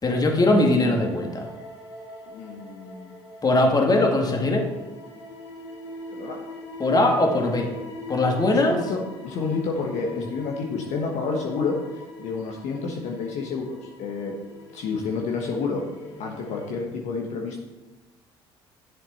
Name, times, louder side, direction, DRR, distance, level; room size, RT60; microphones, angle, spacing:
voice 1, 0.0-1.5 3.4-4.6 6.8-7.7 8.1-8.8 10.1-10.2, left 2 dB, 30° left, 2 dB, 2.0 m, -20 dB
sound 1, 0.5-16.8, left 1 dB, 90° left, 1.3 m, -42 dB
voice 2, 2.3-3.1 6.1-6.4 8.5-9.0 9.2-14.3 14.7-15.8 16.2-17.7, left 4 dB, 55° left, 0 dB, 1.3 m, -29 dB
11.5 x 7.4 x 4.2 m, 1.1 s
hypercardioid pair, 60°, 14 cm